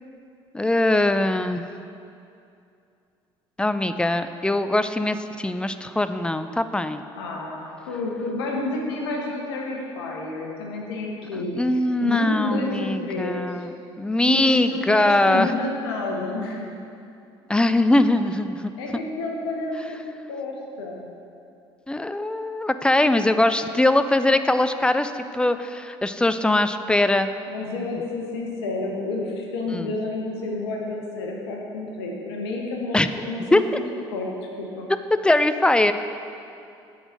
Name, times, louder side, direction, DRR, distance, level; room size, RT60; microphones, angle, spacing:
voice 1, 0.5-1.6 3.6-7.0 11.3-13.7 14.0-15.5 17.5-18.7 21.9-27.3 29.7-29.9 32.9-33.1 33.5-33.6 35.2-35.9, left 1 dB, 5° left, 10 dB, 0.3 m, -21 dB
voice 2, 7.2-11.6 12.0-13.7 14.2-16.7 18.8-21.1 27.5-33.8 34.1-34.3 34.6-34.9, left 2 dB, 70° left, 0 dB, 1.0 m, -30 dB
7.8 x 4.0 x 6.0 m, 2.6 s
figure-of-eight pair, 55°, 14 cm